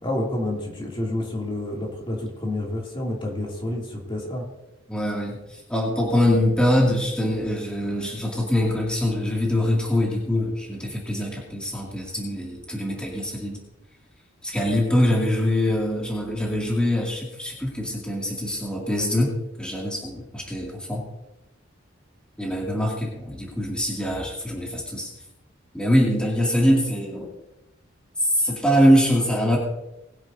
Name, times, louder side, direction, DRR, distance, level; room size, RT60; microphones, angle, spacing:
voice 1, 0.0-4.5, left 1 dB, 25° left, -2 dB, 2.6 m, -29 dB
voice 2, 4.9-13.6 14.4-21.1 22.4-25.1 25.7-27.3 28.2-29.6, equal, 5° left, -3 dB, 2.3 m, -23 dB
20.5 x 10.5 x 2.7 m, 0.94 s
head